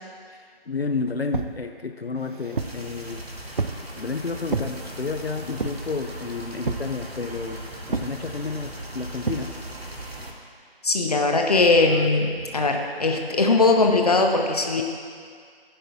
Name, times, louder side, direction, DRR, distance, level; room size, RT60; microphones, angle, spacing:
voice 1, 0.3-3.6 3.9-7.6 7.9-9.5, left 4 dB, 75° left, 6 dB, 0.7 m, -31 dB
sound 1, 1.3-1.6 2.2-2.8 3.6-3.9 4.5-4.7 5.6-5.9 6.7-6.9 7.9-8.2 9.3-9.5, right 4 dB, 55° right, 0.6 m, -29 dB
sound 2, 2.6-10.3, right 1 dB, 85° right, 1.5 m, -38 dB
sound 3, 5.3-5.6 7.4-8.4 9.6-10.0 11.8-12.7, left 1 dB, 5° right, 2.8 m, -46 dB
voice 2, 10.8-14.8, left 3 dB, 40° left, 2 dB, 0.9 m, -20 dB
16.5 x 10.0 x 2.3 m, 2.1 s
figure-of-eight pair, 155°, 30 cm